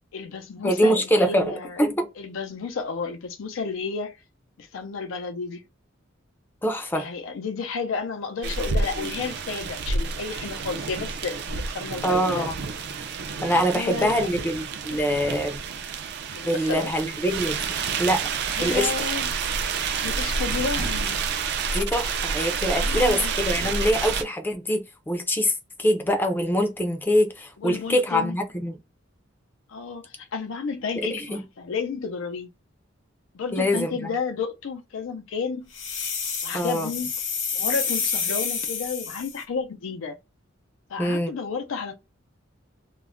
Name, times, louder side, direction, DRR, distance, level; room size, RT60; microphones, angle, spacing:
voice 1, 0.1-1.8 2.2-4.2 4.6-5.6 6.9-12.5 13.6-14.3 14.9-15.0 16.3-16.9 18.6-19.3 19.9-21.2 22.8-23.3 27.6-28.4 29.7-32.5 33.3-35.7 36.4-37.1 37.5-40.2 40.9-41.9, left 5 dB, 85° left, 0.4 m, -32 dB
voice 2, 0.6-2.1 6.6-7.1 12.0-12.6 13.4-15.6 16.4-17.6 18.0-18.3 18.6-18.9 21.7-25.5 25.8-28.8 31.0-31.4 33.5-34.1 36.5-36.9 41.0-41.3, equal, 10° left, 0.4 m, -24 dB
sound 1, 8.4-24.2, right 5 dB, 55° right, 0.4 m, -29 dB
sound 2, 35.7-39.4, left 6 dB, 65° left, 0.8 m, -29 dB
2.3 x 2.1 x 3.5 m
head